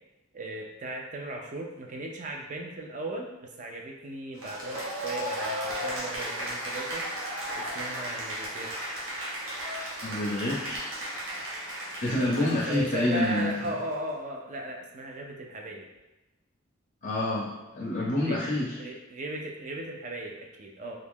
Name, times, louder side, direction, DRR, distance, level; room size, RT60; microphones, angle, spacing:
voice 1, 0.3-3.3 3.6-7.3 7.6-8.9 12.1-15.9 18.2-18.5 18.8-21.0, right 2 dB, 35° right, 1 dB, 0.4 m, -37 dB
Cheering / Applause, 4.4-13.9, equal, 75° right, 1.0 m, -35 dB
voice 2, 10.0-10.8 11.8-13.7 17.0-18.8, left 1 dB, 40° left, -4 dB, 0.5 m, -28 dB
2.7 x 2.5 x 3.5 m, 1.0 s
head